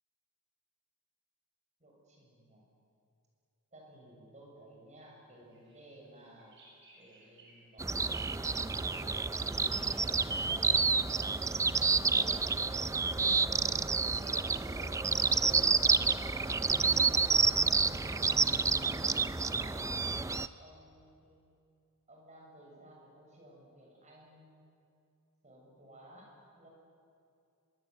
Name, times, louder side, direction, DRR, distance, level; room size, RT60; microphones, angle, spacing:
voice 1, 1.8-2.7 3.7-6.6 6.9-9.2 9.6-15.2 15.7-16.9 17.2-19.8 20.4-21.4 22.1-24.6 25.4-26.7, right 1 dB, 35° right, -1 dB, 7.1 m, -56 dB
Bird vocalization bird call bird song, 5.5-7.8 8.1-17.6, right 2 dB, 55° right, 6.9 m, -63 dB
sound 1, 7.8-20.5, right 4 dB, 15° right, 0.5 m, -29 dB
24.5 x 23.0 x 8.0 m, 2.6 s
head